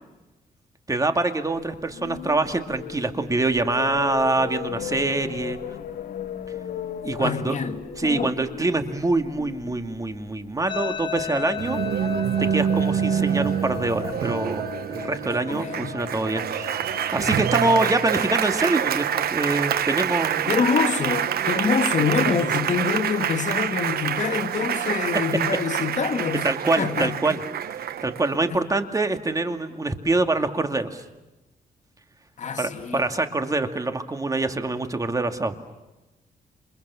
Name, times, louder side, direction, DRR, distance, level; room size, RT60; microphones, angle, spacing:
voice 1, 0.9-5.6 7.0-7.6 8.0-11.8 12.4-16.8 17.1-20.5 26.4-27.4 27.7-31.0 32.6-35.5, right 2 dB, 20° right, 2.4 m, -25 dB
sound 1, 1.6-11.7, left 9 dB, 75° left, 1.9 m, -36 dB
voice 2, 7.2-7.8 8.0-8.3 15.5-16.0 20.5-26.5 26.8-27.4 28.5-28.6 32.4-33.0, left 6 dB, 50° left, 2.3 m, -26 dB
sound 2, 10.7-19.7, left 8 dB, 30° left, 1.1 m, -36 dB
Applause, 11.6-28.6, right 9 dB, 75° right, 1.2 m, -26 dB
29.0 x 28.5 x 7.1 m
cardioid pair, 125°, 16 cm